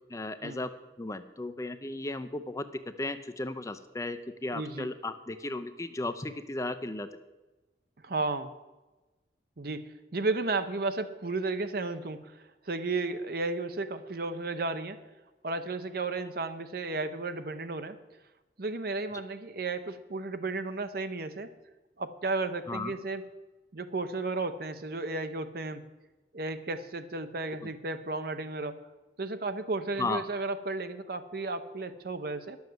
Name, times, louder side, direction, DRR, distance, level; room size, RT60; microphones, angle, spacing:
voice 1, 0.1-0.7 1.0-2.7 3.0-7.1 22.7-22.9 27.6-27.7 30.0-30.2, left 2 dB, 20° left, 10 dB, 0.5 m, -35 dB
voice 2, 4.5-4.9 8.0-8.5 9.6-9.8 10.1-12.2 12.7-15.0 15.4-18.0 18.6-21.5 22.0-23.2 23.7-25.8 26.3-28.8 29.2-32.6, right 3 dB, 55° right, 10 dB, 0.8 m, -33 dB
11.0 x 7.1 x 7.8 m, 1.1 s
head